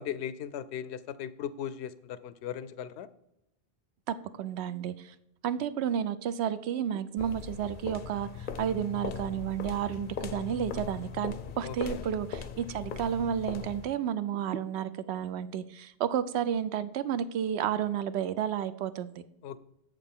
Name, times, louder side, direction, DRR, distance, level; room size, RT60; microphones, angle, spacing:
voice 1, 0.0-3.1 11.6-12.0 19.4-19.6, left 9 dB, 80° left, 15 dB, 0.8 m, -38 dB
voice 2, 4.1-5.1 5.4-19.2, right 9 dB, 75° right, 13 dB, 0.8 m, -31 dB
sound 1, 7.2-14.0, left 7 dB, 55° left, 0.6 m, -39 dB
7.8 x 6.6 x 3.6 m, 0.82 s
omnidirectional pair, 1.1 m